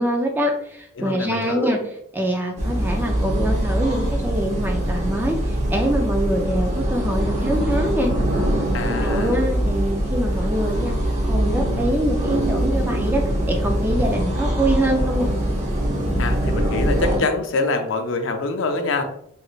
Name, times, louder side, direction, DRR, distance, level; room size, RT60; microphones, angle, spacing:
voice 1, 0.0-1.8 2.1-8.1 8.9-11.0 11.3-15.3, right 1 dB, 10° right, 1 dB, 0.3 m, -24 dB
voice 2, 1.0-1.7 8.7-9.4 16.2-19.0, left 3 dB, 70° left, 6 dB, 0.5 m, -25 dB
sound 1, 2.6-17.2, right 1 dB, 35° right, 0.8 m, -23 dB
3.2 x 3.1 x 2.3 m, 0.71 s
head